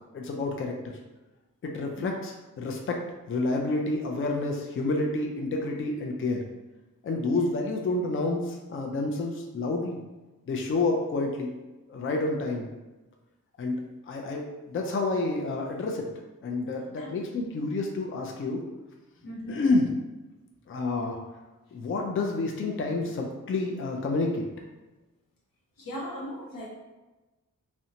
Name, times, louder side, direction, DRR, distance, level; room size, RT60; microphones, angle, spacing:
voice 1, 0.1-0.7 1.6-6.4 7.0-10.0 10.5-11.5 11.9-12.7 13.6-13.8 14.1-16.1 16.4-18.6 19.5-19.8 20.7-21.2 21.7-24.5, left 2 dB, 40° left, 1 dB, 0.4 m, -29 dB
voice 2, 16.9-17.5 19.2-19.6 25.8-26.7, equal, 85° left, -3 dB, 0.7 m, -39 dB
2.6 x 2.1 x 2.7 m, 1.1 s
cardioid pair, 50°, 32 cm